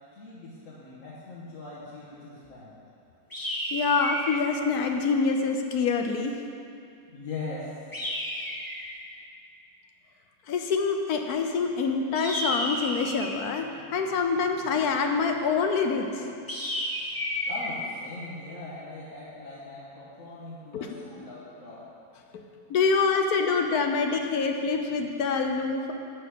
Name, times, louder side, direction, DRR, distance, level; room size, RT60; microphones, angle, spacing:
voice 1, 0.1-2.7 7.1-7.8 14.5-14.7 17.5-21.9, left 3 dB, 55° left, -8 dB, 1.8 m, -40 dB
sound 1, 3.3-4.5 7.9-8.9 12.1-13.4 16.5-17.7, left 1 dB, 15° left, 1.4 m, -32 dB
voice 2, 3.7-6.4 10.5-16.3 20.7-20.9 21.2-21.3 22.3-22.4 22.7-25.9, left 4 dB, 70° left, 4 dB, 1.3 m, -26 dB
11.5 x 4.5 x 8.3 m, 2.5 s
omnidirectional pair, 1.7 m